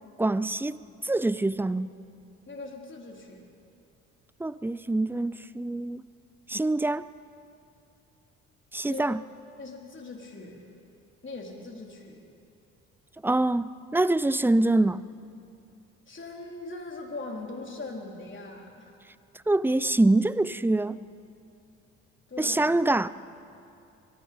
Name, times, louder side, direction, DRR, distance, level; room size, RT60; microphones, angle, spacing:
voice 1, 0.2-0.8 1.0-1.9 4.4-6.0 6.5-7.1 8.7-9.2 13.2-15.0 19.5-21.0 22.4-23.1, right 2 dB, 5° right, 0.6 m, -25 dB
voice 2, 2.5-3.5 8.9-9.2 9.6-10.7 11.2-12.2 16.1-19.0 22.3-22.7, left 3 dB, 30° left, 4.1 m, -40 dB
24.0 x 20.5 x 5.5 m
hypercardioid pair, 50°, 39 cm